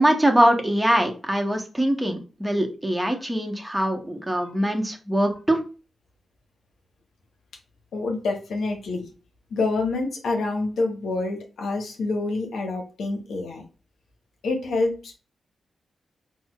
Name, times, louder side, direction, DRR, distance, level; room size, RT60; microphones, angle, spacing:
voice 1, 0.0-5.6, right 1 dB, 10° right, 3 dB, 0.9 m, -22 dB
voice 2, 7.9-9.0 9.5-13.6 14.4-15.2, left 3 dB, 75° left, 3 dB, 0.7 m, -27 dB
4.2 x 2.1 x 2.3 m, 0.34 s
supercardioid pair, 40°, 0 cm